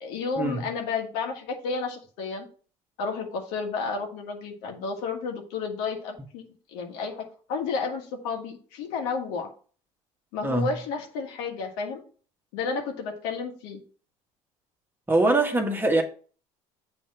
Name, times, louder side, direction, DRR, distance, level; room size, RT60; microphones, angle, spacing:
voice 1, 0.0-2.5 3.0-6.4 6.7-9.5 10.3-12.0 12.5-13.8, left 4 dB, 70° left, 1.6 m, -31 dB
voice 2, 15.1-16.0, right 2 dB, 10° right, 1.5 m, -23 dB
7.3 x 3.4 x 6.2 m
hypercardioid pair, 70°, 17 cm